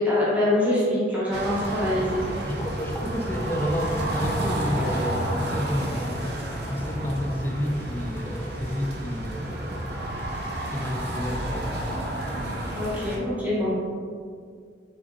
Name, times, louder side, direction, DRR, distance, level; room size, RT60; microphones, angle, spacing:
voice 1, 0.0-2.3 12.7-13.7, left 1 dB, 10° right, -8 dB, 0.8 m, -24 dB
sound 1, 1.3-13.2, right 1 dB, 65° right, 0.6 m, -30 dB
voice 2, 2.4-6.3 6.7-10.2 10.7-12.1, equal, 10° left, 1 dB, 0.3 m, -30 dB
3.5 x 3.5 x 3.5 m, 2.1 s
head